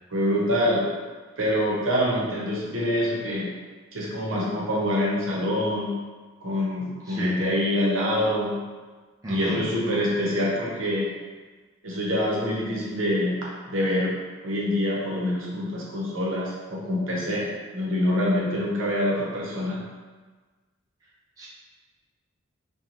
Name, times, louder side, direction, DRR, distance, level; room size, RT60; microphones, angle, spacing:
voice 1, 0.1-0.9 1.4-3.5 3.9-5.9 6.4-8.6 9.3-11.1 11.8-13.4 13.7-14.1 14.4-17.5 17.7-19.8, left 1 dB, 70° right, -4 dB, 0.7 m, -25 dB
voice 2, 7.0-7.4 9.2-9.7 21.4-21.5, right 1 dB, 15° right, -7 dB, 0.3 m, -33 dB
3.0 x 2.2 x 2.5 m, 1.4 s
head